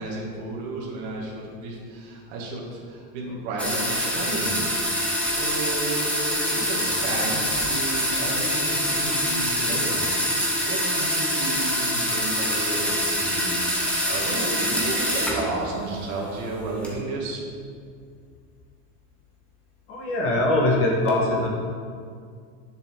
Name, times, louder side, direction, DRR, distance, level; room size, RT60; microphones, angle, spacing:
voice 1, 0.0-4.6 5.2-10.0 10.7-13.6 14.1-17.4, right 2 dB, 60° right, -4 dB, 2.1 m, -32 dB
sound 1, 3.6-15.5 15.8-16.9, equal, 5° left, 1.1 m, -25 dB
voice 2, 19.9-21.5, left 1 dB, 35° left, -2 dB, 1.8 m, -22 dB
10.5 x 6.9 x 3.9 m, 2.2 s
supercardioid pair, 165°, 40 cm